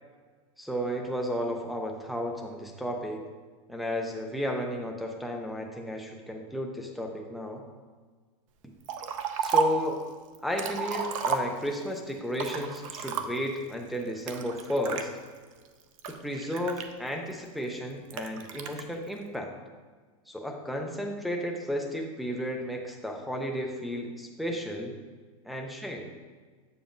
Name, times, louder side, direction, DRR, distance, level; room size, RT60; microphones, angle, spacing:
voice 1, 0.6-3.2 3.7-7.6 8.6-8.7 9.4-10.0 10.4-15.1 16.1-19.5 20.3-25.0 25.4-26.1, equal, ahead, 1 dB, 0.3 m, -33 dB
Liquid, 8.9-9.9 10.3-11.9 12.3-13.6 14.3-15.0 15.6-17.3 18.1-18.8, right 6 dB, 65° right, 0.6 m, -31 dB
7.9 x 7.0 x 2.5 m, 1.5 s
supercardioid pair, 175°, 18 cm